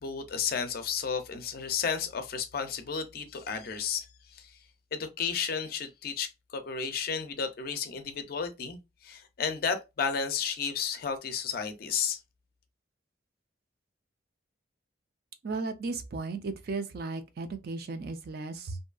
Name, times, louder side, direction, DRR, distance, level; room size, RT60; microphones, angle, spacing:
voice 1, 0.0-4.6 4.9-12.2, left 6 dB, 50° left, 0.4 m, -33 dB
voice 2, 15.4-18.8, right 3 dB, 50° right, 0.4 m, -35 dB
2.6 x 2.3 x 2.3 m
head